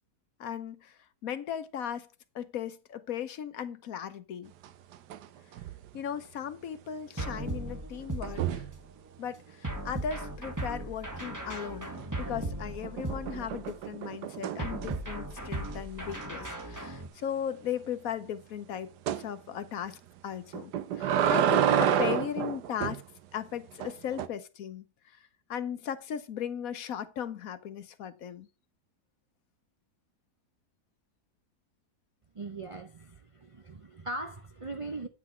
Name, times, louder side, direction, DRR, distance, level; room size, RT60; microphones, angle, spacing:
voice 1, 0.4-0.9 1.2-2.1 2.3-4.5 5.9-8.6 9.2-11.9 12.2-18.9 19.2-23.0 23.3-24.8 25.5-28.5, left 9 dB, 65° left, 1.2 m, -37 dB
sound 1, 4.6-5.3 5.5-5.9 8.2-8.8 11.9-12.4 12.8-15.2 15.6-15.8 16.1-16.2 16.6-16.7 19.1-19.3 20.5-23.0 23.8-24.3, right 9 dB, 90° right, 1.3 m, -29 dB
sound 2, 7.2-8.9 9.6-13.8 14.6-17.1, right 1 dB, 10° right, 1.6 m, -37 dB
voice 2, 32.3-35.1, right 2 dB, 45° right, 0.4 m, -40 dB
9.3 x 5.9 x 4.3 m
omnidirectional pair, 1.7 m